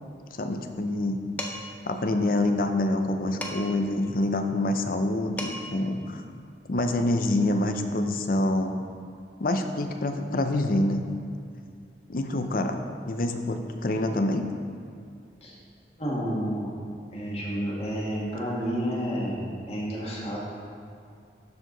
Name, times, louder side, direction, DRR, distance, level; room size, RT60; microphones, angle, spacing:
voice 1, 0.3-1.2 1.9-6.2 6.7-8.7 9.4-11.0 12.1-12.8 13.1-14.4, left 1 dB, 50° left, 6 dB, 0.6 m, -26 dB
Dishes pots and pans, 1.4-1.8 3.4-3.9 5.0-5.1 5.4-5.8, left 1 dB, 10° left, 0.6 m, -36 dB
voice 2, 16.0-16.8 17.1-20.5, equal, 35° left, -5 dB, 1.8 m, -30 dB
12.0 x 4.6 x 3.9 m, 2.4 s
head